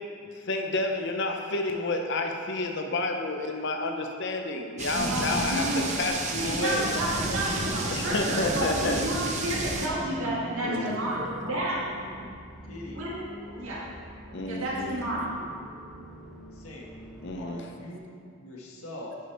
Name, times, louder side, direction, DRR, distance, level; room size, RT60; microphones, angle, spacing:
voice 1, 0.4-5.6 6.0-6.9 7.9-9.0 10.7-11.0 14.3-14.9 17.2-17.6, left 2 dB, 55° left, 3 dB, 0.7 m, -30 dB
sound 1, 4.8-9.9, right 2 dB, 30° right, 0.8 m, -31 dB
voice 2, 4.9-5.8 6.4-11.8 12.9-13.3 13.5-13.9 14.5-15.3, right 1 dB, 65° right, -6 dB, 2.1 m, -31 dB
voice 3, 5.9-6.2 7.3-7.5 8.0-8.2 9.4-9.6 10.6-11.6 11.9-12.4 12.7-13.1 13.4-13.9 14.2-14.5 15.4-15.5 16.5-16.9 17.4-18.1 18.4-19.2, left 1 dB, 85° left, -2 dB, 1.5 m, -42 dB
sound 2, 9.6-17.5, equal, ahead, 0.4 m, -45 dB
10.5 x 5.2 x 4.4 m, 2.3 s
head